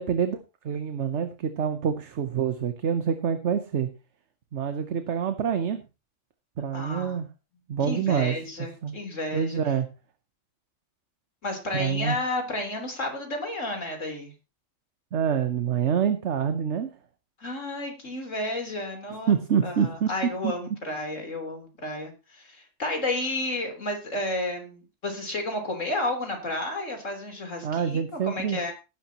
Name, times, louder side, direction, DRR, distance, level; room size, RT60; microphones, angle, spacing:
voice 1, 0.0-3.9 4.5-5.8 6.6-7.3 7.7-8.3 8.8-8.9 9.3-9.9 11.7-12.2 15.1-16.9 19.3-20.1 20.4-20.5 27.6-28.6, right 7 dB, 65° right, 9 dB, 1.2 m, -26 dB
voice 2, 6.7-7.2 7.8-9.6 11.4-14.3 17.4-28.7, left 1 dB, 70° left, 3 dB, 4.0 m, -32 dB
17.5 x 11.0 x 3.0 m, 0.29 s
omnidirectional pair, 1.3 m